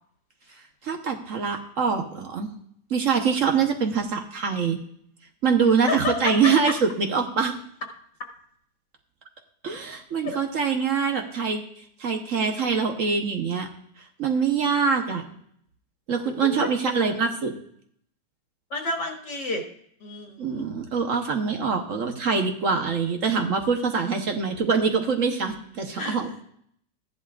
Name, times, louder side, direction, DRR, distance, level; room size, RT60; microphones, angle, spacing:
voice 1, 0.8-2.5 2.9-4.8 5.4-7.5 9.6-11.6 12.0-13.7 14.2-15.2 16.1-17.5 20.4-26.3, right 5 dB, 55° right, 4 dB, 1.2 m, -24 dB
voice 2, 5.9-6.5 10.2-10.3 16.4-16.5 18.7-19.6 20.0-20.7 26.0-26.2, left 3 dB, 85° left, 0 dB, 2.4 m, -30 dB
14.5 x 11.0 x 2.4 m, 0.66 s
omnidirectional pair, 1.8 m